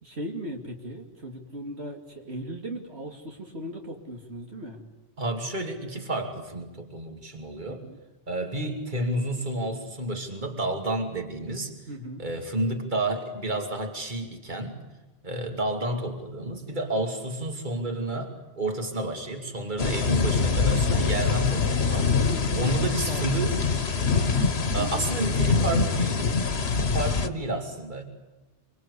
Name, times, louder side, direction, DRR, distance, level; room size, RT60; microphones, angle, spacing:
voice 1, 0.0-4.8 7.7-8.0 11.9-12.2 22.0-23.5 24.8-25.1 25.4-25.7, right 1 dB, 70° right, 2 dB, 2.9 m, -38 dB
voice 2, 5.2-7.8 8.3-11.7 12.2-14.8 15.2-22.1 22.6-23.5 24.7-26.2 26.9-28.0, right 1 dB, 45° right, 3 dB, 2.9 m, -30 dB
Rainy Day, 19.8-27.3, left 4 dB, 70° left, 1.6 m, -24 dB
26.0 x 25.0 x 8.4 m, 1.1 s
omnidirectional pair, 1.1 m